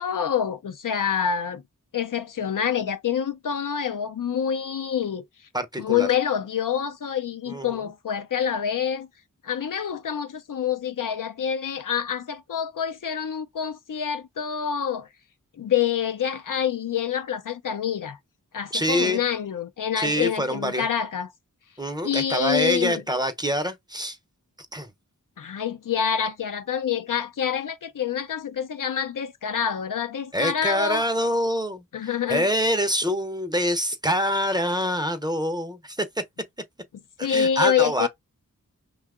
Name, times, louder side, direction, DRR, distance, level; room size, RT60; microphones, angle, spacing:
voice 1, 0.0-1.6 1.9-5.2 5.8-9.1 9.4-15.1 15.6-18.2 18.5-21.3 22.0-23.0 25.4-31.1 31.9-32.4 37.2-38.1, left 8 dB, 70° left, 0.5 m, -26 dB
voice 2, 5.5-6.1 7.5-7.8 18.7-19.2 20.0-20.8 21.8-24.2 24.7-24.9 30.3-31.8 32.3-36.1 37.2-38.1, equal, 10° right, 0.6 m, -25 dB
2.8 x 2.3 x 3.6 m
wide cardioid pair, 45°, 34 cm